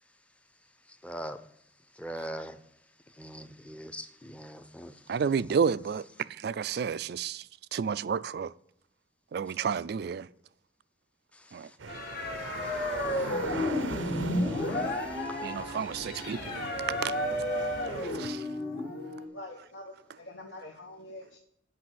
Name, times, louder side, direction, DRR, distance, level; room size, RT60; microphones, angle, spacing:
voice 1, 1.0-1.4 2.0-2.6 3.2-4.9, right 1 dB, 5° left, 0.6 m, -40 dB
voice 2, 5.1-6.0 6.4-7.4 7.7-8.5 9.3-10.3 11.5-11.7 15.4-16.5 17.0-17.1 18.1-18.4, right 6 dB, 55° right, 0.3 m, -30 dB
sound 1, 11.8-18.3, right 4 dB, 90° right, 0.7 m, -41 dB
sound 2, 11.9-19.3, left 1 dB, 55° left, 1.8 m, -32 dB
voice 3, 19.3-21.4, left 1 dB, 70° left, 1.0 m, -45 dB
8.6 x 5.4 x 7.6 m
head